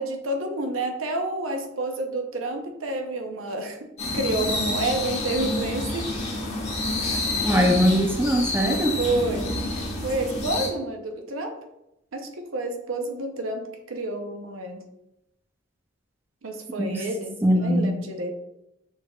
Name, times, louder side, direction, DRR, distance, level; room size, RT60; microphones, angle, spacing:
voice 1, 0.0-3.8 4.1-6.1 7.0-7.5 8.6-9.5 10.0-11.5 12.1-14.8 16.4-18.3, right 2 dB, 85° right, 4 dB, 0.7 m, -29 dB
sound 1, 4.0-10.7, left 2 dB, 35° left, 1.3 m, -28 dB
voice 2, 7.4-8.9 16.8-17.0 17.4-17.9, equal, 10° right, 2 dB, 0.5 m, -21 dB
6.6 x 3.4 x 2.3 m, 0.86 s
head